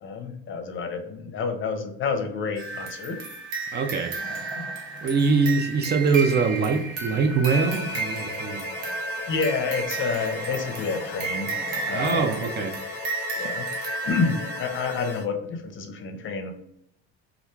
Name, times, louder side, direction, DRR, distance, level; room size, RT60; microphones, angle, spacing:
voice 1, 0.0-3.2 4.3-4.6 9.3-11.5 11.9-12.3 13.4-13.7 14.0-16.5, left 5 dB, 40° left, 5 dB, 0.6 m, -29 dB
sound 1, 2.6-15.2, right 3 dB, 80° right, 0.8 m, -33 dB
voice 2, 3.7-4.2 5.0-8.6 11.9-12.8, right 4 dB, 35° right, 5 dB, 0.4 m, -23 dB
Wood, 4.2-13.0, equal, 5° left, 1.1 m, -45 dB
sound 2, 7.5-15.3, left 6 dB, 85° left, 0.5 m, -38 dB
2.4 x 2.1 x 3.1 m, 0.77 s
hypercardioid pair, 75°, 32 cm